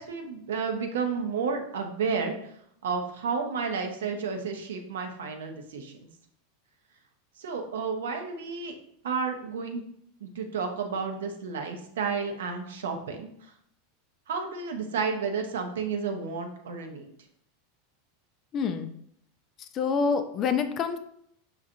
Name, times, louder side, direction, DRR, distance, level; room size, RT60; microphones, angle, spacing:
voice 1, 0.0-2.5 2.8-6.1 7.4-8.7 9.0-9.8 10.2-13.3 14.3-17.1, right 5 dB, 65° right, 4 dB, 0.6 m, -31 dB
voice 2, 18.5-18.9 19.7-21.0, left 5 dB, 35° left, 9 dB, 0.4 m, -26 dB
5.9 x 2.4 x 2.6 m, 0.70 s
figure-of-eight pair, 85°, 0 cm